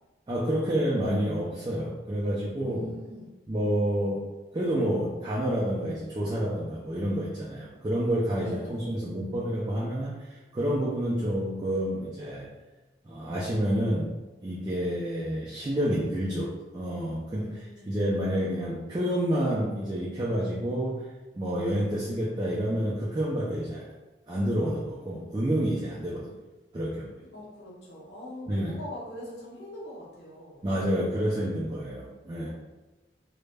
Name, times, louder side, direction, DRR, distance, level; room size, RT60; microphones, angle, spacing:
voice 1, 0.3-2.8 3.5-4.2 4.5-12.5 13.0-14.1 14.4-21.0 21.4-23.8 24.3-26.3 26.7-27.1 28.5-28.7 30.6-32.5, equal, 25° right, -6 dB, 0.3 m, -29 dB
voice 2, 2.6-3.3 8.4-9.0 17.3-18.0 27.3-30.7, left 1 dB, 75° left, -4 dB, 0.7 m, -42 dB
2.2 x 2.0 x 3.2 m, 1.2 s
head